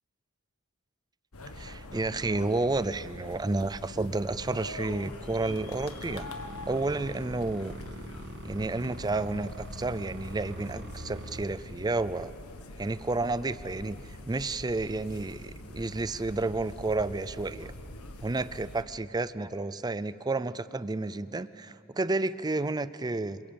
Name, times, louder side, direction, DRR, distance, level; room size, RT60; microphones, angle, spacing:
sound 1, 1.3-18.8, left 2 dB, 75° left, 1.6 m, -44 dB
voice 1, 1.6-6.3 6.7-7.8 8.4-12.3 12.8-17.7 18.2-23.4, right 2 dB, 20° right, 15 dB, 0.5 m, -31 dB
sound 2, 5.5-11.4, right 1 dB, 55° right, 1.5 m, -43 dB
27.5 x 21.0 x 8.8 m, 2.8 s
head